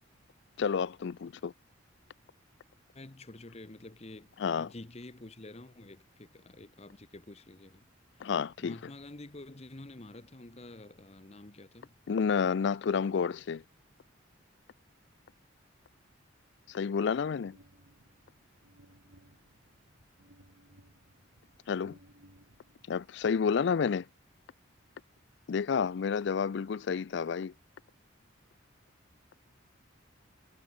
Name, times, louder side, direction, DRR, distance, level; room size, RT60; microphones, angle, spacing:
voice 1, 0.6-1.5 4.4-4.7 8.2-8.8 12.1-13.6 16.7-17.6 21.7-22.0 22.9-24.1 25.5-27.5, left 6 dB, 60° left, 0.4 m, -30 dB
voice 2, 2.9-7.8 8.2-8.3 8.6-11.9, left 2 dB, 30° left, 1.0 m, -49 dB
sound 1, 17.5-24.1, right 1 dB, 70° right, 3.9 m, -62 dB
head